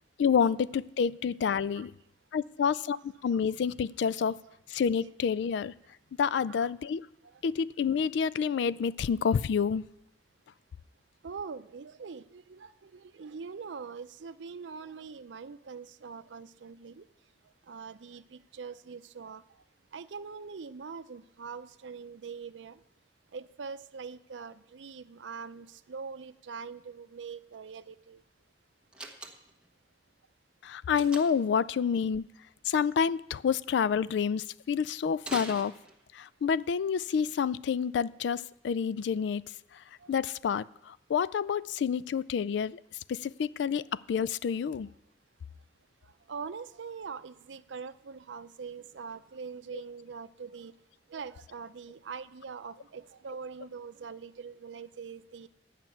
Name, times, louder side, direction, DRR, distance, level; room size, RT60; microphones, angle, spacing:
voice 1, 0.2-1.9 2.3-4.4 4.7-5.7 6.2-7.1 7.4-9.9 30.6-32.2 32.6-35.7 36.1-39.4 40.1-42.8 43.1-44.9 49.7-49.8, left 6 dB, 70° left, 0.3 m, -28 dB
voice 2, 11.2-17.1 17.7-19.4 19.9-22.8 23.3-28.2 40.0-40.1 43.7-43.8 46.3-50.7 51.1-55.5, right 5 dB, 85° right, 0.5 m, -43 dB
Slam, 28.9-29.7 31.0-31.5 35.2-36.3, right 2 dB, 5° right, 1.2 m, -42 dB
11.0 x 5.9 x 9.1 m
head